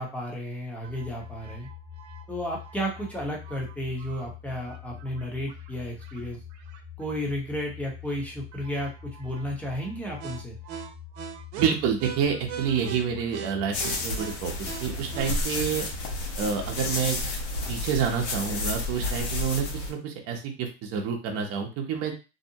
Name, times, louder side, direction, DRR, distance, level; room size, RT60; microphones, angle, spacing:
voice 1, 0.0-1.7 2.3-6.4 7.0-10.6, equal, 5° left, -2 dB, 0.7 m, -33 dB
sound 1, 0.8-16.2, equal, 85° right, 0.7 m, -42 dB
voice 2, 11.6-15.9 16.4-17.2 17.7-22.1, right 7 dB, 45° right, 2 dB, 0.7 m, -28 dB
sound 2, 13.7-19.9, left 2 dB, 75° left, 1.0 m, -31 dB
2.7 x 2.0 x 2.7 m, 0.31 s
supercardioid pair, 135°, 33 cm